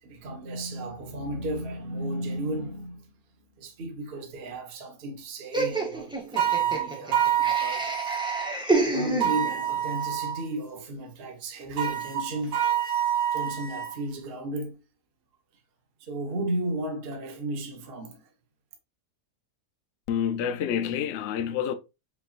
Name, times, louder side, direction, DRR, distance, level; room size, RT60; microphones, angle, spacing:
voice 1, 0.0-3.1 3.6-8.0 8.8-12.7 13.3-14.8 16.0-18.3, right 1 dB, 45° right, 1.0 m, -34 dB
Laughter, 5.5-9.8, right 2 dB, 5° right, 0.6 m, -29 dB
sound 1, 6.4-8.5 9.2-10.5 11.8-13.9, right 10 dB, 60° right, 1.3 m, -27 dB
voice 2, 20.1-21.7, left 8 dB, 70° left, 0.6 m, -28 dB
5.6 x 2.8 x 2.4 m
omnidirectional pair, 1.6 m